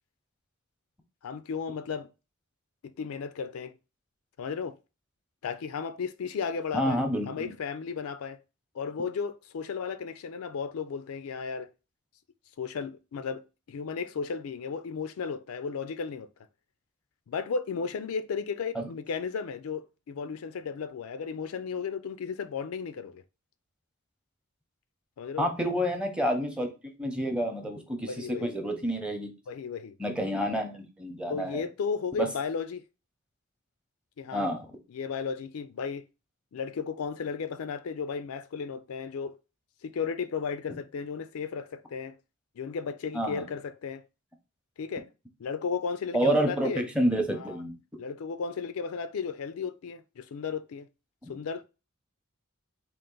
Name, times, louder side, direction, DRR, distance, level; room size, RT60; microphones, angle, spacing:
voice 1, 1.2-2.1 2.8-3.7 4.4-4.7 5.4-8.4 8.7-11.7 12.6-16.3 17.3-23.2 25.2-25.5 28.1-28.6 29.5-30.0 31.3-32.8 34.2-34.5 34.9-36.0 36.5-39.3 39.8-42.1 42.6-44.0 44.8-45.1 45.4-46.8 47.4-47.6 48.0-50.9 51.3-51.6, left 5 dB, 85° left, 0.4 m, -34 dB
voice 2, 6.7-7.5 18.7-18.9 25.4-26.7 27.0-29.3 30.0-31.6 32.2-32.3 34.3-34.7 43.1-43.5 46.1-47.8 51.2-51.3, equal, 5° right, 0.7 m, -29 dB
3.8 x 2.5 x 3.8 m
head